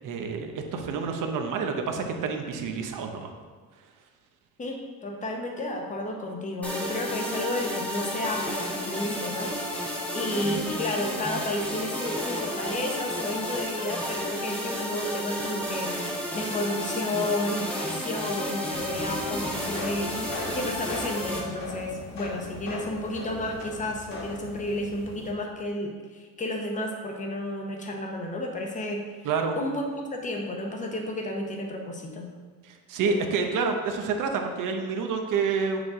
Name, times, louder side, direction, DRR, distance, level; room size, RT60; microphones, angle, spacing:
voice 1, 0.0-3.3 29.2-29.6 32.6-35.8, right 5 dB, 60° right, 4 dB, 0.8 m, -28 dB
voice 2, 4.6-9.8 10.1-29.0 29.5-32.3 33.1-33.5, left 1 dB, 20° left, 1 dB, 0.9 m, -32 dB
sound 1, 6.6-21.4, left 1 dB, 5° left, 1.2 m, -32 dB
sound 2, 18.7-25.3, left 2 dB, 50° left, 1.7 m, -39 dB
8.1 x 5.0 x 3.7 m, 1.5 s
cardioid pair, 160°, 35 cm